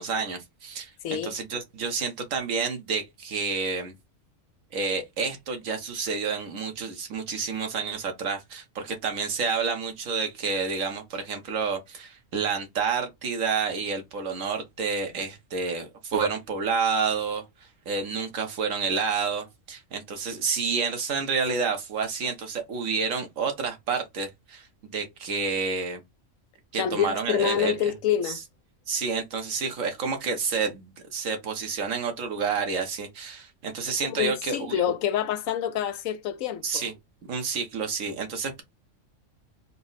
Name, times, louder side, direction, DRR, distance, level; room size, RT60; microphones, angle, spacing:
voice 1, 0.0-3.9 4.7-17.4 17.9-26.0 26.7-27.9 28.2-28.3 28.9-34.8 36.6-36.9 37.3-38.6, right 5 dB, 80° right, 1.4 m, -29 dB
voice 2, 1.0-1.4 26.8-28.4 34.0-36.8, left 10 dB, 85° left, 1.0 m, -27 dB
4.2 x 2.1 x 3.9 m
omnidirectional pair, 1.4 m